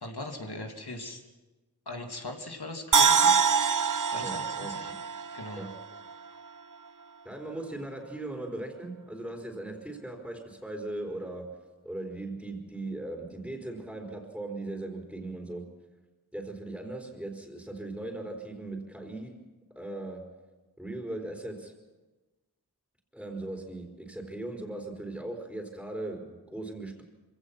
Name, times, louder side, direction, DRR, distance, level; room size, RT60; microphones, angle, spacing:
voice 1, 0.0-1.2 1.9-3.4 4.1-4.9 5.3-5.6, left 2 dB, 75° left, 3 dB, 2.9 m, -39 dB
sound 1, 2.9-6.1 6.5-6.6, right 6 dB, 55° right, 0.7 m, -25 dB
voice 2, 4.2-4.7 5.6-5.8 7.2-15.7 16.3-20.3 20.8-21.8 23.1-27.0, right 2 dB, ahead, 0 dB, 4.2 m, -39 dB
26.0 x 17.0 x 5.9 m, 1.2 s
wide cardioid pair, 45°, 39 cm